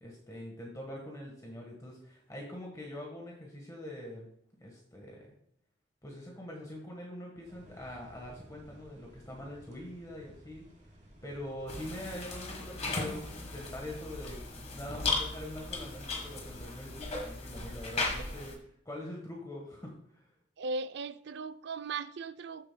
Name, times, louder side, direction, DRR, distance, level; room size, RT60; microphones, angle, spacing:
voice 1, 0.0-4.3 4.6-5.4 6.0-10.6 11.2-20.3, left 1 dB, 15° left, 1.4 m, -44 dB
sound 1, 7.5-16.6, equal, 40° right, 2.1 m, -55 dB
sound 2, 11.7-18.5, left 3 dB, 35° left, 1.5 m, -37 dB
voice 2, 20.6-22.7, right 3 dB, 60° right, 0.4 m, -38 dB
13.0 x 6.8 x 2.2 m
head